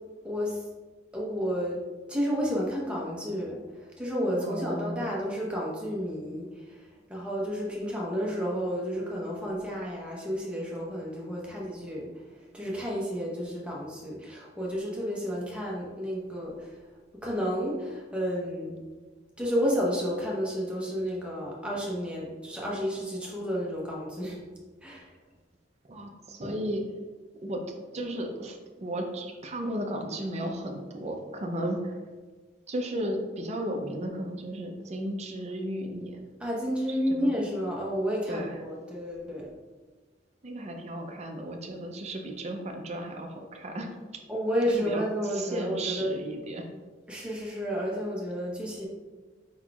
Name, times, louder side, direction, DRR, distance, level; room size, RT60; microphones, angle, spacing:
voice 1, 0.2-0.6 1.1-1.8 2.1-3.6 4.0-12.1 12.5-16.7 17.2-18.8 19.4-24.4 24.8-25.1 36.4-39.5 44.3-46.1 47.1-48.9, equal, 5° right, -4 dB, 0.9 m, -31 dB
voice 2, 4.4-5.0 9.7-9.9 25.9-26.8 27.4-32.0 32.7-36.2 36.9-37.3 38.3-38.6 40.4-44.2 44.7-46.7, right 1 dB, 35° right, 3 dB, 0.5 m, -34 dB
4.7 x 4.3 x 2.3 m, 1.3 s
head